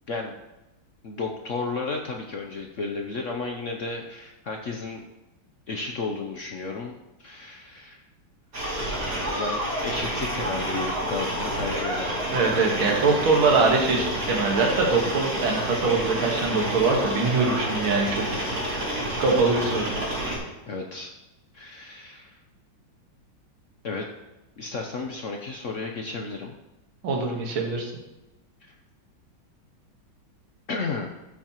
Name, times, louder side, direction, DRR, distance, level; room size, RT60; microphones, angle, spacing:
voice 1, 1.0-5.0 5.7-8.0 9.1-13.1 18.3-18.5 20.7-21.1 21.5-22.4 23.8-24.1 24.6-26.5 28.6-28.7 30.7-31.1, left 3 dB, 65° left, 2 dB, 0.7 m, -33 dB
sound 1, 8.5-20.4, right 1 dB, 45° right, 3.0 m, -29 dB
voice 2, 12.3-18.6 19.2-19.9 27.0-27.9, right 4 dB, 80° right, 0 dB, 2.3 m, -23 dB
13.0 x 6.9 x 3.0 m, 1.0 s
omnidirectional pair, 2.2 m